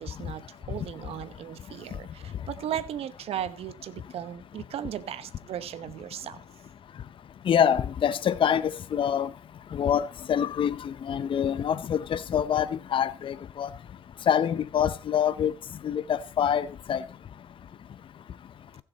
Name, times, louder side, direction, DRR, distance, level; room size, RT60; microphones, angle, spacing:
voice 1, 0.0-6.4, right 10 dB, 70° right, 0.9 m, -36 dB
voice 2, 7.5-9.3 9.7-13.7 14.3-15.5 15.8-17.0, left 8 dB, 55° left, 0.7 m, -26 dB
15.5 x 7.3 x 4.1 m
supercardioid pair, 60°, 10 cm